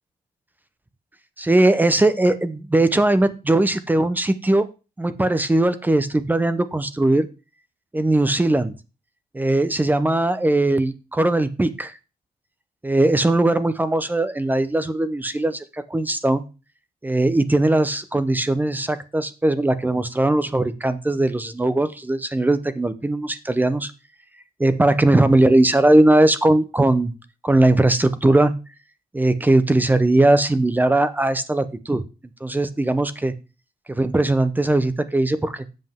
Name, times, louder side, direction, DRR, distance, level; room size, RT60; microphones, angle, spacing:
voice 1, 1.4-4.7 5.0-7.3 7.9-8.7 9.3-11.9 12.8-16.4 17.0-23.9 24.6-27.1 27.4-28.6 29.1-32.0 32.4-33.3 33.9-35.6, right 2 dB, 10° right, 12 dB, 0.6 m, -19 dB
7.7 x 7.5 x 3.6 m, 0.30 s
wide cardioid pair, 165°, 17 cm